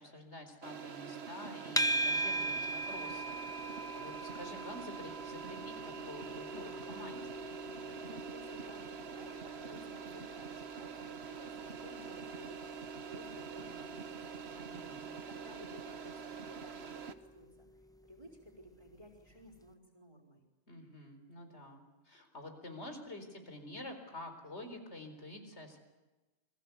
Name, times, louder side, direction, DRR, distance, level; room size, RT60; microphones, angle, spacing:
voice 1, 0.0-7.4 14.5-15.2 20.7-25.8, left 1 dB, 85° left, 6 dB, 4.5 m, -49 dB
sound 1, 0.6-17.1, right 6 dB, 70° right, 1.5 m, -45 dB
sound 2, 1.8-19.0, right 1 dB, 5° left, 0.7 m, -42 dB
voice 2, 8.0-14.4 14.7-20.4, equal, 30° right, -7 dB, 4.5 m, -56 dB
sound 3, 9.5-10.3 13.3-14.4, left 1 dB, 50° left, 6.1 m, -66 dB
28.5 x 22.0 x 8.3 m, 1.2 s
omnidirectional pair, 1.1 m